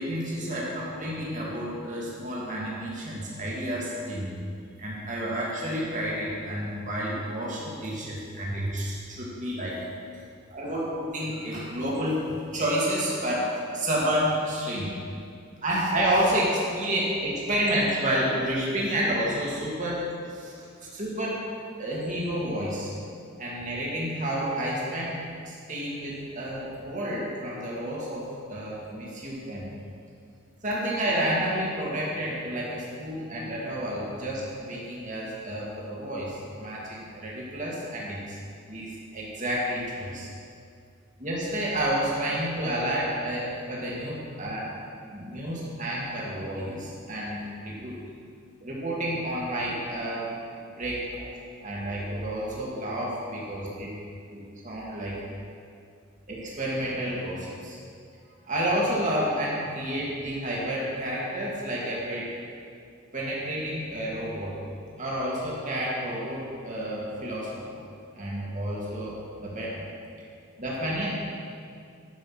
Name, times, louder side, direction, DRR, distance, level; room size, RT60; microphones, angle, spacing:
voice 1, 0.0-4.3 4.8-9.8 10.5-15.0 15.6-20.7 20.9-21.4 21.8-22.9 23.4-29.7 30.6-38.4 38.7-40.3 41.2-44.8 45.1-47.9 48.6-50.3 50.7-51.2 51.6-53.9 54.3-55.2 56.3-57.8 58.4-62.3 63.1-64.6 65.0-67.8 68.2-69.9 70.6-71.1, right 1 dB, 40° right, -5 dB, 2.5 m, -30 dB
11.5 x 6.3 x 6.2 m, 2.3 s
head